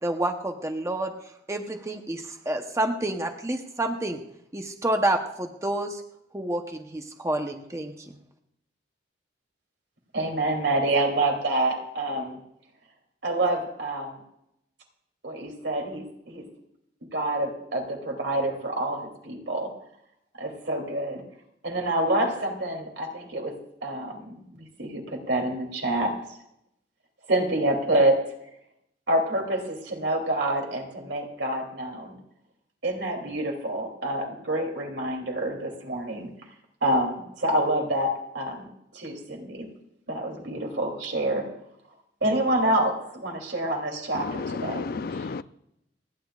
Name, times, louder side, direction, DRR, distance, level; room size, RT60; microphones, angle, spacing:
voice 1, 0.0-1.1 1.5-4.2 4.5-6.0 6.3-7.9, right 1 dB, 15° right, 4 dB, 0.9 m, -28 dB
voice 2, 10.1-12.4 13.2-14.2 15.2-16.4 17.1-19.7 20.4-21.2 21.6-23.5 23.8-26.1 27.3-28.2 29.1-32.2 32.8-36.3 36.8-38.7 38.9-39.7 40.1-41.5 42.2-44.9 45.1-45.3, right 1 dB, 70° right, 1 dB, 2.9 m, -27 dB
voice 3, 44.1-45.4, left 4 dB, 55° left, 14 dB, 0.4 m, -32 dB
29.0 x 10.0 x 2.4 m, 0.78 s
head